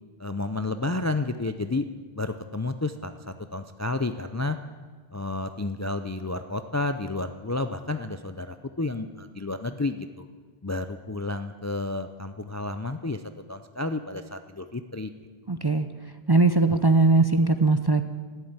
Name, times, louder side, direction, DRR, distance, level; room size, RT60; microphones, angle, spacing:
voice 1, 0.2-1.9 2.1-4.6 5.1-10.2 10.6-13.2 13.5-15.1, left 2 dB, 25° left, 9 dB, 0.4 m, -31 dB
voice 2, 15.5-15.9 16.3-18.1, right 3 dB, 30° right, 9 dB, 0.5 m, -20 dB
13.0 x 11.0 x 8.9 m, 1.5 s
omnidirectional pair, 1.0 m